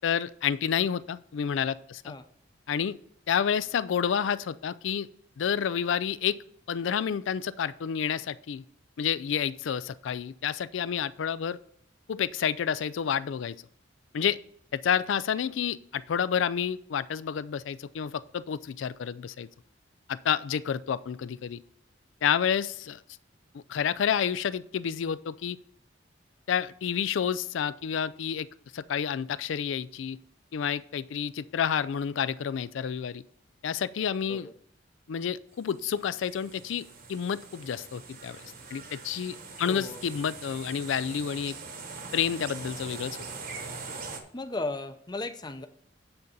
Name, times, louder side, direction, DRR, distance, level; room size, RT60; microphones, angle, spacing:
voice 1, 0.0-2.1 2.7-3.0 3.3-5.1 5.4-6.4 6.7-8.6 9.0-11.6 12.1-13.6 14.1-14.4 14.7-19.5 20.1-21.6 22.2-23.0 23.5-25.6 26.5-28.5 28.7-30.2 30.5-33.2 33.6-34.5 35.1-38.4 38.7-41.6 42.1-43.2, left 8 dB, 75° left, 17 dB, 0.4 m, -29 dB
sound 1, 35.6-44.2, right 4 dB, 50° right, 1.1 m, -43 dB
voice 2, 39.6-40.0 44.3-45.7, left 2 dB, 20° left, 9 dB, 0.6 m, -35 dB
8.9 x 4.0 x 7.1 m, 0.66 s
head